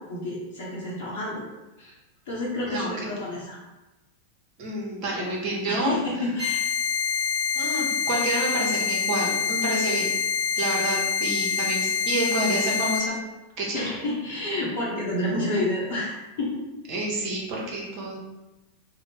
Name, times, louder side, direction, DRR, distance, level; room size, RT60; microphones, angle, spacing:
voice 1, 0.0-1.4 1.8-1.9 2.3-3.6 5.7-6.6 13.7-16.6, left 1 dB, 55° left, -6 dB, 0.7 m, -29 dB
voice 2, 2.6-3.2 4.6-5.9 7.5-10.1 10.6-13.2 13.6-13.9 16.9-18.2, right 2 dB, 40° right, -3 dB, 0.8 m, -28 dB
sound 1, 6.4-13.0, left 6 dB, 15° right, 0.9 m, -26 dB
2.6 x 2.1 x 3.3 m, 1.1 s
figure-of-eight pair, 90°, 0 cm